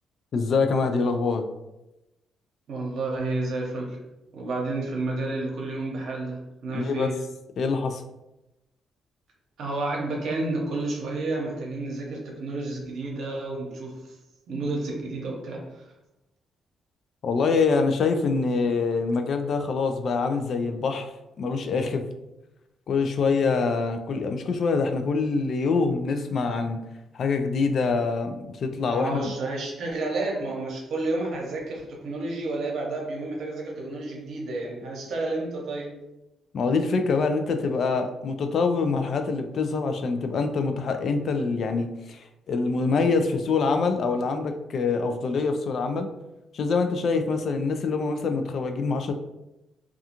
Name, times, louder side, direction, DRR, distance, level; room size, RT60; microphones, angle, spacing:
voice 1, 0.3-1.5 6.7-7.2 7.6-8.0 17.2-21.1 21.4-22.0 22.9-26.8 27.1-29.2 36.5-46.1 46.5-49.1, left 4 dB, 60° left, 7 dB, 0.3 m, -25 dB
voice 2, 2.7-4.0 4.3-7.2 9.6-14.2 14.5-15.8 28.9-36.0, right 2 dB, 70° right, -1 dB, 0.7 m, -30 dB
2.4 x 2.3 x 2.8 m, 0.94 s
cardioid pair, 90°, 0 cm